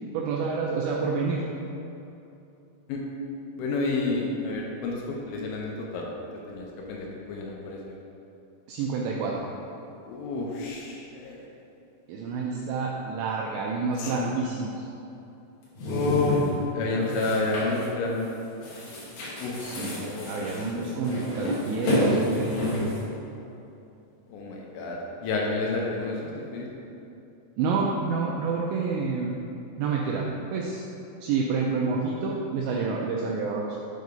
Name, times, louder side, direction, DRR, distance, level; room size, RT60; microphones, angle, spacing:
voice 1, 0.1-1.4 8.7-9.5 12.1-14.9 19.6-22.7 27.6-29.3 29.8-30.8 31.2-33.8, right 4 dB, 85° right, -2 dB, 2.5 m, -28 dB
voice 2, 3.6-6.1 6.5-8.0 10.0-11.5 14.0-14.4 15.9-16.5 16.7-18.3 19.4-20.5 20.8-20.9 24.3-26.7, left 3 dB, 90° left, -2 dB, 3.3 m, -30 dB
sound 1, 14.0-14.2 15.6-16.6 17.1-17.9 18.2-18.3 18.6-23.0, left 1 dB, 65° left, 1.8 m, -29 dB
8.0 x 4.7 x 5.3 m, 2.8 s
omnidirectional pair, 5.8 m